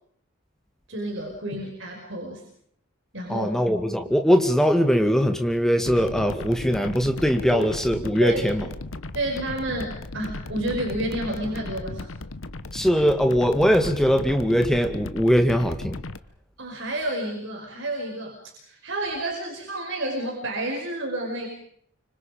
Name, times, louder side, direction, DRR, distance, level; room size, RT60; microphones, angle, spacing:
voice 1, 0.9-2.4 3.1-3.5 7.5-7.7 8.2-8.4 9.1-12.1 16.6-21.5, right 1 dB, 65° right, 0 dB, 5.3 m, -30 dB
voice 2, 3.3-8.6 12.7-16.0, equal, ahead, 5 dB, 2.1 m, -21 dB
sound 1, 5.8-16.2, left 2 dB, 85° left, 1.2 m, -36 dB
30.0 x 25.5 x 5.2 m, 0.65 s
head